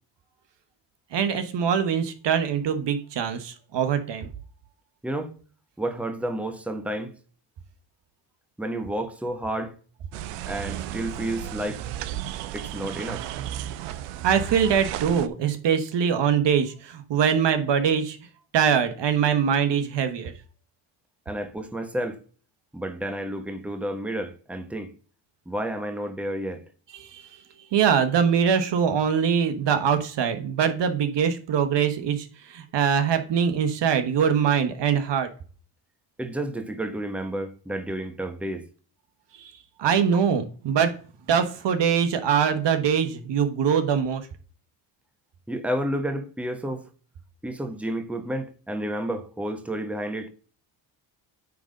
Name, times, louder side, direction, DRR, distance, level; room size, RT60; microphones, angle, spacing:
voice 1, 1.1-4.3 14.2-18.2 18.5-20.3 26.9-27.3 27.7-35.3 39.3-39.5 39.8-40.9 41.3-44.2, right 7 dB, 55° right, 1.3 m, -23 dB
voice 2, 5.8-7.1 8.6-9.7 10.5-11.8 12.5-13.3 21.2-22.2 22.7-24.9 25.5-26.6 36.2-38.7 45.5-46.9 47.4-50.3, right 1 dB, 5° right, 1.3 m, -31 dB
sound 1, 10.1-15.3, right 12 dB, 85° right, 0.8 m, -34 dB
9.3 x 3.8 x 5.3 m
supercardioid pair, 75°, 50 cm